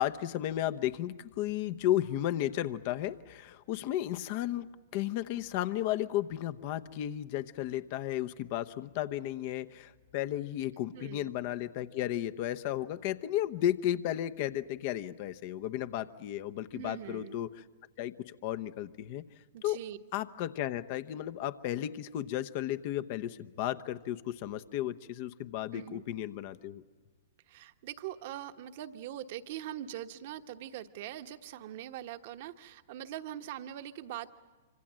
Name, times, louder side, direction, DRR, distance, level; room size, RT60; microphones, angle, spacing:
voice 1, 0.0-17.5 18.0-19.2 19.6-19.8 20.1-26.8, left 12 dB, 50° left, 11 dB, 0.9 m, -34 dB
voice 2, 10.9-11.3 16.7-17.4 19.5-20.0 25.7-26.0 27.5-34.3, right 11 dB, 55° right, 9 dB, 1.2 m, -42 dB
26.0 x 25.0 x 7.6 m, 1.4 s
hypercardioid pair, 115°, 0 cm